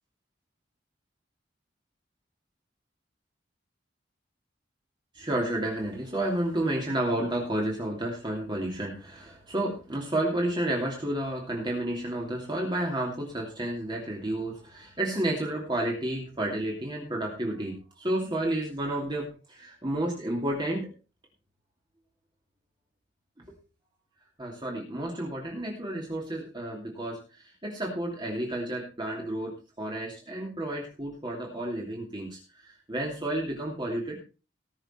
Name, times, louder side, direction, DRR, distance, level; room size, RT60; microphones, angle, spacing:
voice 1, 5.1-20.9 23.5-23.6 24.4-34.2, right 1 dB, 25° right, -1 dB, 2.8 m, -31 dB
19.0 x 6.8 x 4.4 m, 0.33 s
head